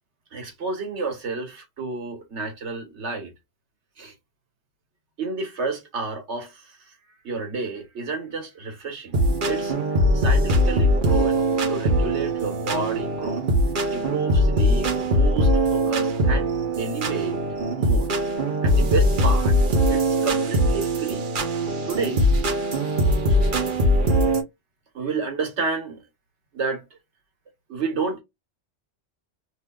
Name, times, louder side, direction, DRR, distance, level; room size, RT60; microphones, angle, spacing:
voice 1, 0.3-3.3 4.0-4.1 5.2-6.9 7.2-9.2 9.4-9.7 10.1-13.4 13.9-16.5 16.8-17.4 17.8-18.1 18.6-19.6 19.9-21.3 21.8-22.4 24.9-26.0 26.5-26.8 27.7-28.2, right 4 dB, 90° right, 1.6 m, -30 dB
sound 1, 9.1-24.4, equal, 50° right, 0.9 m, -21 dB
3.3 x 2.8 x 2.2 m
omnidirectional pair, 1.1 m